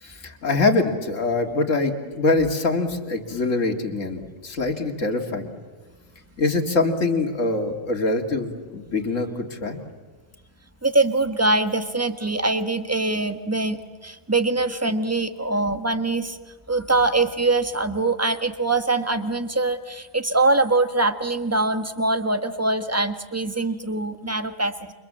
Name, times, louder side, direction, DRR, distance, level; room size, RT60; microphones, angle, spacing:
voice 1, 0.0-5.4 6.4-9.8, left 3 dB, 65° left, 3 dB, 2.7 m, -24 dB
voice 2, 10.8-13.8 14.0-16.4 16.7-24.9, right 2 dB, 10° right, 8 dB, 1.4 m, -23 dB
29.5 x 27.0 x 7.5 m, 1.4 s
omnidirectional pair, 1.4 m